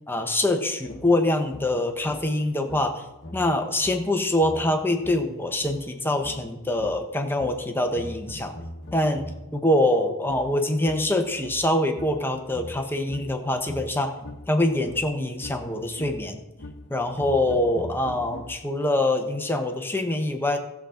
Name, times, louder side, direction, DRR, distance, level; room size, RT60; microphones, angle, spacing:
voice 1, 0.1-3.0 3.3-8.5 8.9-14.1 14.5-16.4 16.9-20.6, left 1 dB, 10° left, 4 dB, 0.9 m, -24 dB
sound 1, 0.8-9.6 10.3-18.9, left 1 dB, 50° left, 1.1 m, -42 dB
16.0 x 7.2 x 3.8 m, 0.96 s
head